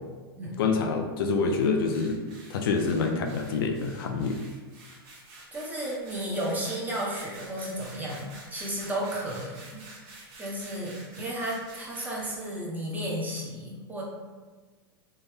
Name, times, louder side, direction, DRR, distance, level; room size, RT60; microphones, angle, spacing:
voice 1, 0.6-2.2 2.5-4.4, left 4 dB, 65° left, 4 dB, 0.4 m, -26 dB
sound 1, 1.8-12.5, right 2 dB, 45° right, 0.9 m, -49 dB
voice 2, 5.5-9.8 10.1-14.0, right 1 dB, 15° right, -4 dB, 0.8 m, -33 dB
3.3 x 2.1 x 3.3 m, 1.4 s
hypercardioid pair, 115°, 13 cm